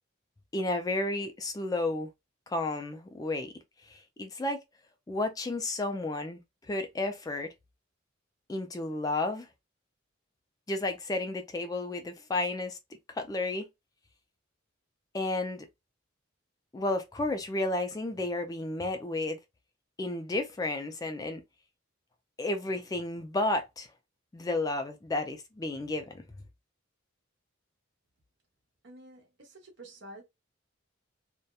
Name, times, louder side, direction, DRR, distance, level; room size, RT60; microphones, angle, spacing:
voice 1, 0.5-2.1 2.5-3.5 3.9-4.6 5.1-6.4 6.7-7.5 8.5-9.5 10.7-12.8 13.1-13.6 15.1-15.7 16.7-19.4 20.0-21.4 22.4-23.9 24.3-26.2, left 2 dB, 20° left, 0.3 m, -32 dB
voice 2, 28.8-30.2, right 1 dB, 65° right, 1.0 m, -49 dB
2.7 x 2.1 x 2.2 m
head